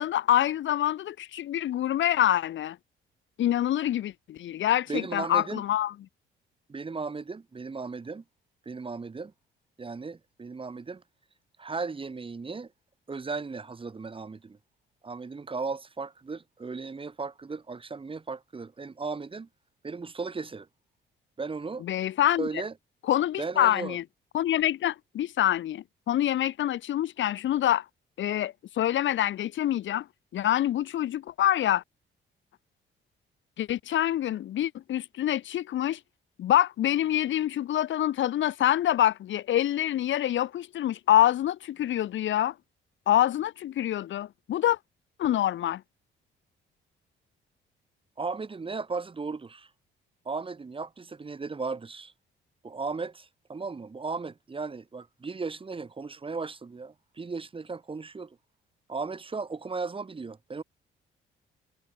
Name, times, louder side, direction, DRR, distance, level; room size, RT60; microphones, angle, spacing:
voice 1, 0.0-2.8 3.4-5.9 21.8-22.5 23.1-24.0 24.3-27.8 28.2-30.0 30.3-31.8 33.6-36.0 36.4-42.5 43.1-44.8 45.2-45.8, left 12 dB, 70° left, 1.7 m, -26 dB
voice 2, 4.9-5.6 6.7-8.2 8.6-9.3 9.8-11.0 11.6-12.7 13.1-14.6 15.0-19.5 19.8-20.7 21.4-21.8 22.4-22.7 23.4-24.0 48.2-49.7 50.2-52.1 52.6-58.4 58.9-60.6, right 4 dB, 25° right, 1.5 m, -36 dB
cardioid pair, 90°, 20 cm